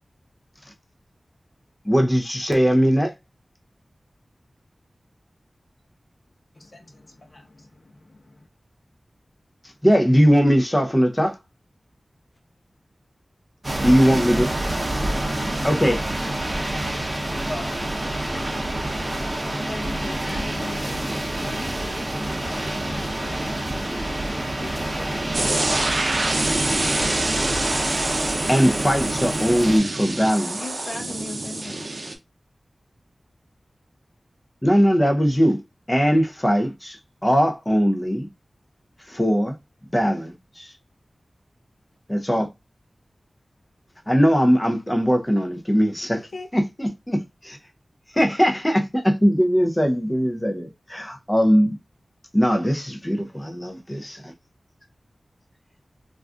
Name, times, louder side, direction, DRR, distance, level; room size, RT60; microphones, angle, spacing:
voice 1, 1.8-3.1 9.8-11.4 13.8-14.5 15.6-16.0 28.5-30.6 34.6-35.6 35.9-37.0 37.2-38.3 39.1-39.5 39.9-40.7 42.1-42.5 44.1-46.2 46.5-47.6 48.1-51.8 52.3-54.3, equal, 15° left, 0.5 m, -20 dB
voice 2, 6.5-8.5, left 1 dB, 50° left, 0.9 m, -42 dB
sound 1, 13.6-29.8, right 1 dB, 30° right, 0.8 m, -27 dB
voice 3, 19.6-24.3 24.6-25.3 30.6-31.9 46.1-46.5, left 2 dB, 70° left, 0.5 m, -38 dB
sound 2, 25.3-32.1, right 2 dB, 60° right, 0.5 m, -26 dB
2.4 x 2.3 x 3.5 m
wide cardioid pair, 80°, 0 cm